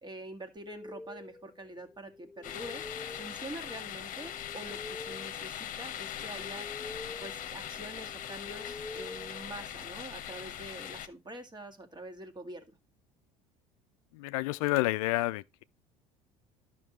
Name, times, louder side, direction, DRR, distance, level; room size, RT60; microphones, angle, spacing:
voice 1, 0.0-12.7, right 1 dB, 25° right, 1.8 m, -46 dB
sound 1, 0.6-10.3, left 2 dB, 15° left, 1.0 m, -48 dB
sound 2, 2.4-11.1, left 10 dB, 45° left, 1.0 m, -41 dB
voice 2, 14.1-15.6, left 19 dB, 70° left, 0.4 m, -29 dB
12.5 x 5.4 x 3.1 m
hypercardioid pair, 70°, 19 cm